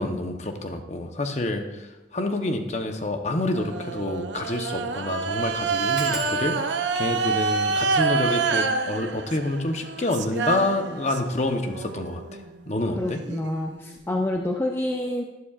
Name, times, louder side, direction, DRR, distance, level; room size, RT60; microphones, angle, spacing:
voice 1, 0.0-13.2, left 2 dB, 40° left, 5 dB, 0.9 m, -28 dB
sound 1, 2.8-3.0 3.4-3.5 3.7-3.8 4.4-4.6 4.9-5.0 6.0-11.2 11.9-12.4 12.7-13.1 13.3-13.4, equal, 5° right, 1.1 m, -44 dB
sound 2, 3.5-11.4 11.7-14.4, right 4 dB, 85° right, 0.7 m, -28 dB
voice 2, 13.0-15.2, left 1 dB, 15° left, 2 dB, 0.4 m, -27 dB
12.0 x 11.5 x 2.4 m, 1.1 s
head